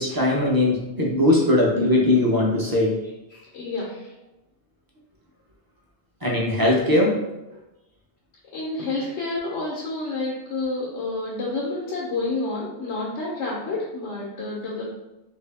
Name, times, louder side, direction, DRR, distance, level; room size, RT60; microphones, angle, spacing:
voice 1, 0.0-3.0 6.2-7.2, left 1 dB, 25° right, -3 dB, 0.6 m, -20 dB
voice 2, 3.3-4.1 8.5-14.9, left 2 dB, 85° left, -5 dB, 1.1 m, -29 dB
3.2 x 2.7 x 3.3 m, 0.99 s
omnidirectional pair, 1.2 m